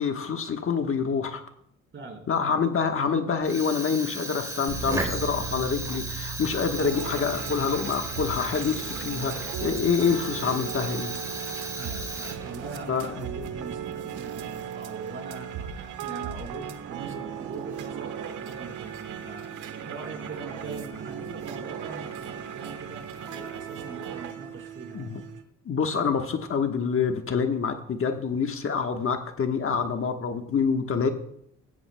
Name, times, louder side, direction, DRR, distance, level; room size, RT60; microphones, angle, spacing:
voice 1, 0.0-1.4 2.3-11.1 12.9-13.2 24.9-25.2 25.6-31.1, left 6 dB, 45° left, 5 dB, 1.2 m, -26 dB
voice 2, 1.9-2.6 11.8-25.2, right 3 dB, 40° right, 1 dB, 4.1 m, -42 dB
Fire, 3.4-12.7, right 1 dB, 10° right, 3.4 m, -35 dB
sound 1, 4.7-21.4, right 6 dB, 60° right, 3.7 m, -43 dB
sound 2, 6.8-25.4, right 8 dB, 90° right, 1.2 m, -37 dB
17.0 x 14.0 x 2.2 m, 0.71 s
cardioid pair, 90°, 30 cm